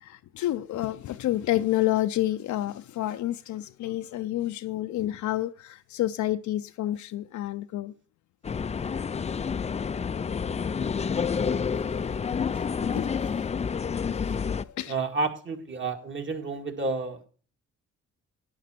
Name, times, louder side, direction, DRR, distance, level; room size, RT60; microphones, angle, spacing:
voice 1, 0.0-7.9 11.8-12.2 12.5-12.6 12.9-13.1 14.3-14.5 14.7-14.9, left 14 dB, 75° left, 0.6 m, -29 dB
sound 1, 8.4-14.6, left 6 dB, 25° left, 0.4 m, -29 dB
voice 2, 14.9-17.3, right 3 dB, 40° right, 2.1 m, -31 dB
11.0 x 9.2 x 4.4 m
cardioid pair, 90°, 29 cm